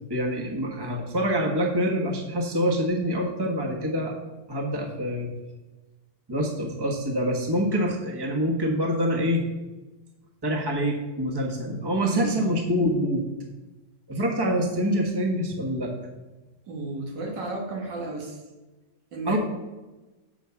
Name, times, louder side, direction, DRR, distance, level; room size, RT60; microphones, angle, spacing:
voice 1, 0.1-4.1 4.5-5.3 6.3-9.4 10.4-13.3 14.1-15.9 19.3-19.4, equal, 15° right, 0 dB, 1.2 m, -26 dB
voice 2, 16.7-18.4 19.1-19.4, right 2 dB, 90° right, 1 dB, 2.2 m, -33 dB
7.2 x 5.1 x 7.0 m, 1.1 s
omnidirectional pair, 1.9 m